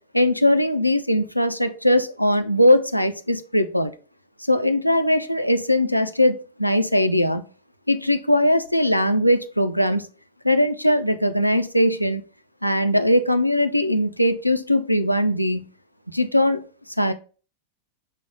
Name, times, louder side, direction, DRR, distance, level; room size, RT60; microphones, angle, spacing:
voice 1, 0.1-3.9 4.5-7.4 7.9-10.1 10.4-12.2 12.6-15.7 16.1-16.6 17.0-17.1, left 1 dB, 90° left, 8 dB, 0.3 m, -20 dB
4.8 x 2.0 x 3.8 m, 0.37 s
figure-of-eight pair, 90°, 0 cm